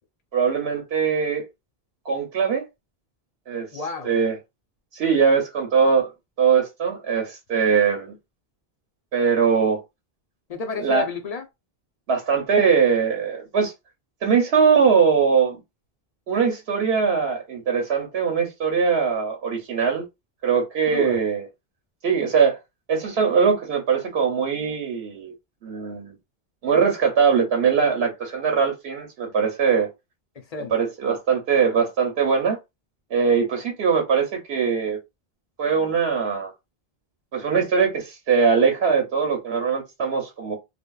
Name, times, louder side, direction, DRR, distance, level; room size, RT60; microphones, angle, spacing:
voice 1, 0.3-1.4 2.0-2.6 3.5-3.7 4.0-4.3 4.9-6.1 6.4-8.1 9.1-9.8 10.8-11.0 12.1-13.7 14.2-15.6 16.3-20.0 20.4-21.4 22.0-22.6 22.9-25.3 25.6-26.1 26.6-29.9 30.7-32.6 33.1-35.0 35.6-36.5 37.3-40.5, right 6 dB, 90° right, 1.0 m, -21 dB
voice 2, 3.7-4.1 10.5-11.5 20.9-21.2 30.4-30.7, left 4 dB, 45° left, 0.6 m, -30 dB
3.3 x 2.1 x 2.3 m
omnidirectional pair, 1.0 m